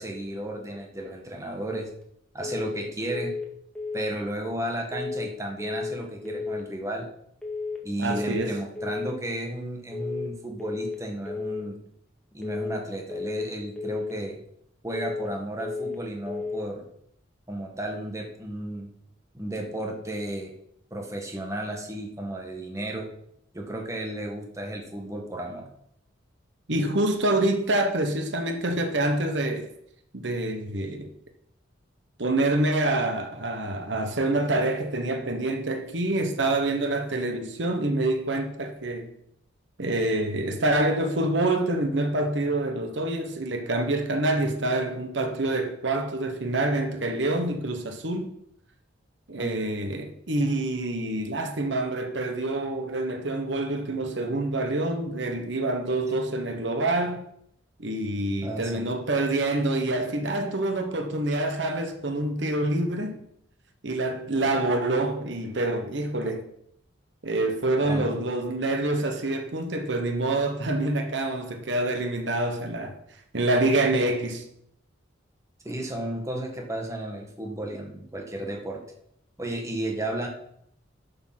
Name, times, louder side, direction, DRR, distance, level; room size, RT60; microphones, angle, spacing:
voice 1, 0.0-1.9 2.3-3.3 3.9-7.1 7.8-11.8 12.3-14.4 14.8-16.8 17.5-18.9 19.3-20.5 20.9-23.1 23.5-25.7 49.4-49.5 58.4-58.9 67.8-68.1 75.6-78.8 79.4-80.3, right 1 dB, 15° right, 1.7 m, -33 dB
sound 1, 2.4-2.8 3.1-3.5 3.7-4.1 4.9-5.3 5.6-6.0 6.2-6.6 7.4-7.8 8.1-8.5 8.7-9.1 9.9-10.3 10.6-11.0 11.2-11.6 12.4-12.8 13.1-13.5 13.8-14.1 14.9-15.3 15.6-16.0 16.3-16.7, left 4 dB, 5° left, 2.1 m, -33 dB
voice 2, 8.0-8.5 26.7-29.7 30.1-31.1 32.2-39.1 39.8-48.3 49.3-57.2 57.8-63.2 63.8-66.5 67.2-73.0 73.3-74.4, right 2 dB, 65° right, 1.2 m, -26 dB
11.5 x 7.0 x 6.0 m
head